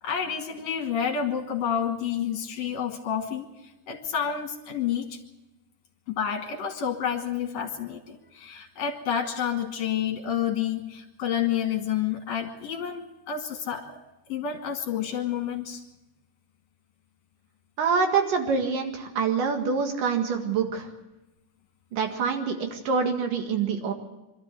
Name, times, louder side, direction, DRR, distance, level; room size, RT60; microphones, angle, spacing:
voice 1, 0.0-3.5 3.9-5.2 6.1-14.0 14.3-15.8, left 8 dB, 60° left, 3 dB, 2.7 m, -29 dB
voice 2, 17.8-20.9 21.9-23.9, right 5 dB, 80° right, 4 dB, 3.5 m, -26 dB
24.5 x 13.0 x 8.2 m, 1.0 s
omnidirectional pair, 3.7 m